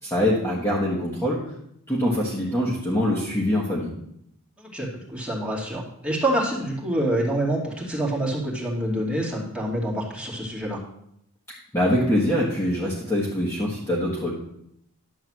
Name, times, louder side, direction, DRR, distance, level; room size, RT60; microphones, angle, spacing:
voice 1, 0.0-1.4 1.9-3.9 11.7-14.3, left 1 dB, 10° left, -5 dB, 1.5 m, -24 dB
voice 2, 4.7-10.8, right 1 dB, 5° right, -5 dB, 2.3 m, -26 dB
11.0 x 3.9 x 7.5 m, 0.75 s
head